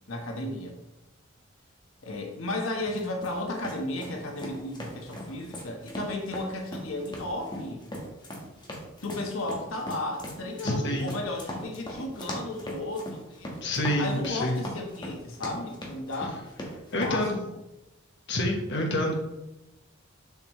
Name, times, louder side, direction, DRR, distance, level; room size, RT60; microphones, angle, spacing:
voice 1, 0.1-0.8 2.0-7.8 9.0-13.7 14.0-16.5 17.0-17.6, left 2 dB, 85° left, 1 dB, 1.3 m, -34 dB
sound 1, 2.9-17.2, equal, 20° left, 1.4 m, -39 dB
voice 2, 10.6-11.1 13.6-14.6 16.9-17.4 18.3-19.2, left 1 dB, 60° left, 0 dB, 1.2 m, -27 dB
7.1 x 6.3 x 3.1 m, 0.95 s
head